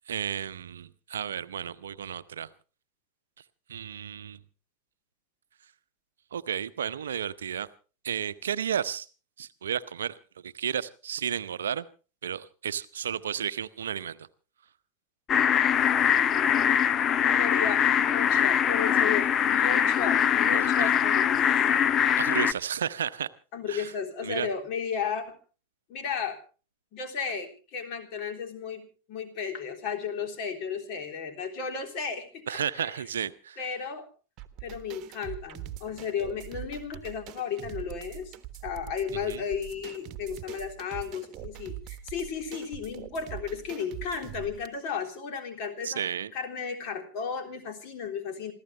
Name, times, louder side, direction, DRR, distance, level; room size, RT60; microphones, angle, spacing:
voice 1, 0.1-2.5 3.7-4.4 6.3-7.7 8.0-9.1 9.4-10.2 10.4-11.8 12.2-14.3 20.5-20.9 22.2-23.3 23.7-23.9 24.2-24.5 32.5-33.6 39.3-39.4 45.8-46.3, right 8 dB, 65° right, 15 dB, 0.7 m, -32 dB
sound 1, 15.3-22.5, left 8 dB, 25° left, 0.7 m, -23 dB
voice 2, 17.2-21.5 23.5-25.4 25.9-26.4 26.9-33.0 33.6-34.1 34.6-38.3 38.6-48.5, left 6 dB, 40° left, 5 dB, 3.5 m, -34 dB
sound 2, 34.4-44.7, right 13 dB, 35° right, 1.3 m, -43 dB
27.5 x 14.5 x 3.3 m, 0.36 s
figure-of-eight pair, 90°, 0 cm